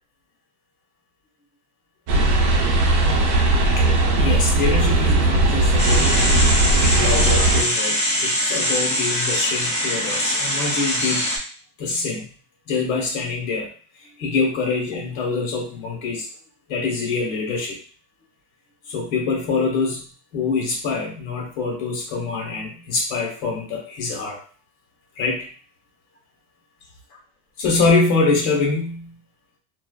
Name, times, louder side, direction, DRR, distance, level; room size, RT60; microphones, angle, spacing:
sound 1, 2.1-7.6, right 2 dB, 40° right, 0.7 m, -18 dB
voice 1, 4.1-6.3 6.8-11.3 11.8-12.2 12.7-13.7 14.2-16.3 16.7-17.8 18.9-20.1 20.3-24.4 25.2-25.5 27.6-29.2, left 4 dB, 80° left, -1 dB, 1.3 m, -24 dB
sound 2, 5.8-11.4, equal, 15° left, 0.6 m, -23 dB
2.5 x 2.2 x 2.4 m, 0.40 s
supercardioid pair, 125°, 49 cm